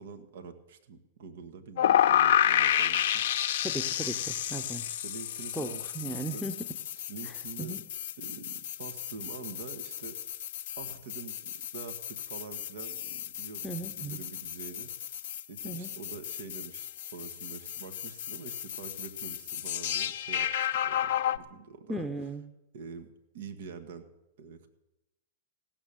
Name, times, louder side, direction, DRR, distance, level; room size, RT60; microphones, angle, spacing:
voice 1, 0.0-3.2 4.9-6.5 6.9-7.8 8.2-10.2 10.8-14.9 15.5-22.1 22.7-23.1 23.3-24.1 24.4-24.7, right 5 dB, 65° right, 7 dB, 1.7 m, -45 dB
sound 1, 1.8-21.4, left 10 dB, 65° left, 0.7 m, -31 dB
voice 2, 3.6-4.8 5.5-5.7 5.9-6.5 7.2-7.8 13.6-14.2 15.6-15.9 21.9-22.4, right 1 dB, ahead, 5 dB, 0.9 m, -36 dB
16.5 x 7.3 x 9.2 m, 0.90 s
hypercardioid pair, 115°, 0 cm